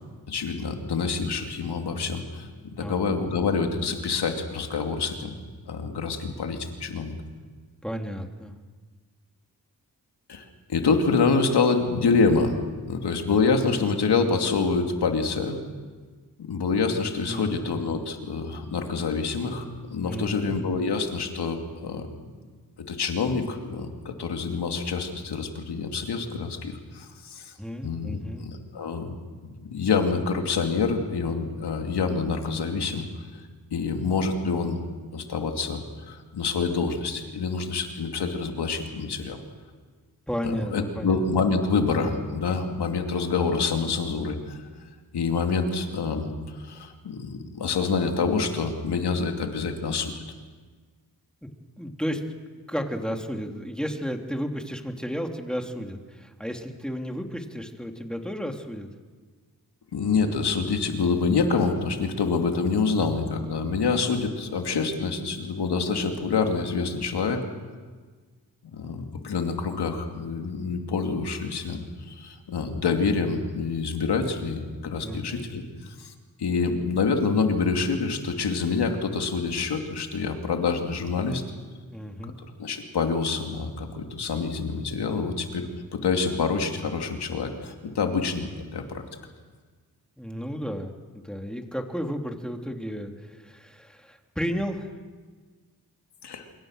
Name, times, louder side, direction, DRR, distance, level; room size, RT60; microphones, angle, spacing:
voice 1, 0.3-5.3 5.7-7.1 10.3-12.6 12.9-15.6 16.4-22.3 22.9-27.5 27.8-29.1 29.7-33.1 33.7-34.8 35.1-39.4 40.4-44.6 45.1-50.2 59.9-67.4 68.7-75.6 76.0-76.1 76.4-81.4 82.2-82.3 82.6-85.7 85.9-89.0 96.2-96.4, left 4 dB, 80° left, 4 dB, 2.7 m, -26 dB
voice 2, 2.8-3.2 7.8-8.5 17.3-17.6 20.1-20.5 27.6-28.4 40.3-41.2 51.4-51.5 51.8-52.4 52.7-58.9 75.0-75.4 81.9-82.4 90.2-94.9, equal, ahead, 3 dB, 3.2 m, -33 dB
26.0 x 23.0 x 6.6 m, 1.5 s
cardioid pair, 45°, 39 cm